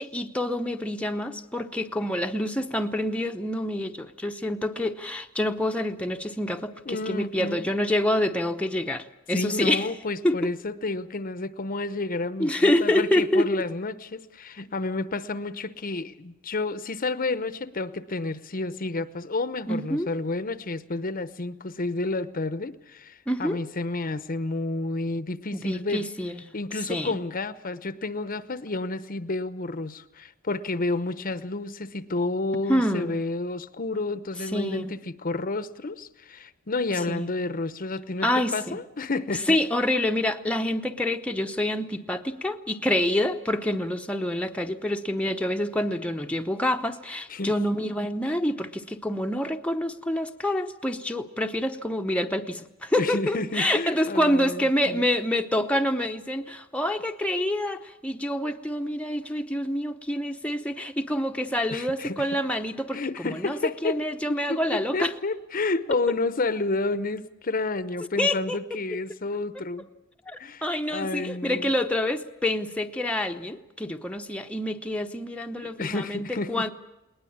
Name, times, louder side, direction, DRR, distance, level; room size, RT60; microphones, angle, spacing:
voice 1, 0.0-9.9 10.2-10.5 12.4-13.6 19.7-20.1 23.3-23.6 25.5-26.4 26.9-27.2 32.7-33.2 34.5-34.9 37.1-37.2 38.2-38.8 39.5-63.0 63.3-65.1 68.2-68.6 68.9-69.0 70.3-76.7, left 1 dB, 5° left, 4 dB, 0.9 m, -27 dB
voice 2, 6.9-7.6 9.3-26.1 26.5-39.6 47.3-47.8 53.0-55.0 61.7-62.2 62.9-64.0 64.3-69.9 70.4-71.7 75.6-76.7, left 3 dB, 45° left, 13 dB, 0.9 m, -30 dB
20.5 x 19.5 x 8.7 m, 0.93 s
head